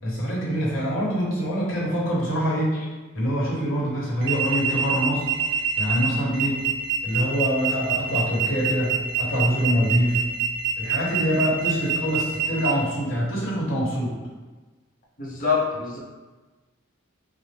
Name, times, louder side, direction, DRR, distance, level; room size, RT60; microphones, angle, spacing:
voice 1, 0.0-2.7 3.1-5.3 5.8-6.6 7.0-10.2 10.8-14.1, equal, 65° left, -6 dB, 1.2 m, -25 dB
sound 1, 4.2-12.7, right 8 dB, 55° right, 0.4 m, -25 dB
voice 2, 15.2-16.0, left 5 dB, 40° left, -4 dB, 0.7 m, -25 dB
4.1 x 2.0 x 3.3 m, 1.2 s
head